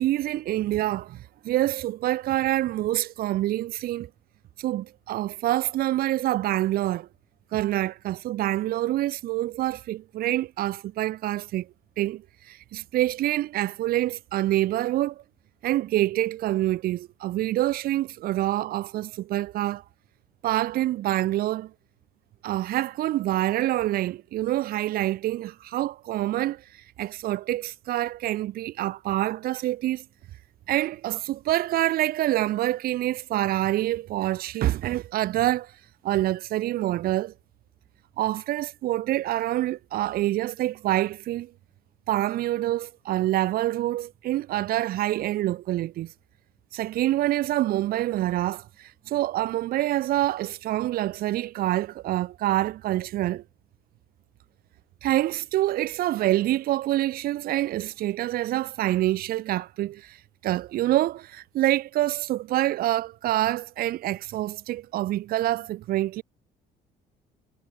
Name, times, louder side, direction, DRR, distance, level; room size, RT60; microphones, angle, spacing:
voice 1, 0.0-4.1 4.6-7.1 7.5-11.7 12.0-15.2 15.6-19.8 20.4-21.7 22.4-26.6 27.0-30.0 30.7-35.7 36.0-37.3 38.2-41.5 42.1-46.1 46.7-53.4 55.0-60.2 60.4-66.2, right 15 dB, 60° right, 0.6 m, -26 dB
cardioid pair, 110°, 17 cm